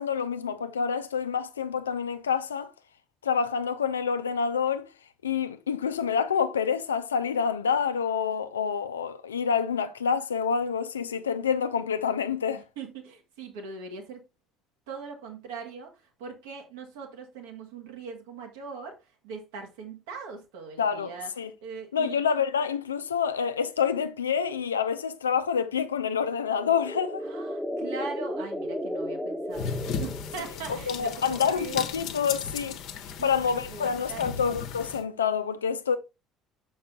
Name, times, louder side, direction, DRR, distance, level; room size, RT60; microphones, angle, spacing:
voice 1, 0.0-2.7 3.2-4.9 5.2-12.6 20.8-21.5 21.9-27.2 30.7-32.8 33.2-36.0, left 6 dB, 85° left, 0.5 m, -27 dB
voice 2, 12.6-14.2 14.9-19.0 19.2-21.3 21.6-22.2 27.2-31.9 33.2-33.3 33.6-34.5, right 5 dB, 70° right, 1.9 m, -41 dB
sound 1, 26.5-30.7, equal, 5° right, 1.1 m, -34 dB
sound 2, 29.5-35.0, left 7 dB, 60° left, 1.0 m, -36 dB
6.6 x 5.4 x 3.7 m
figure-of-eight pair, 60°, 0 cm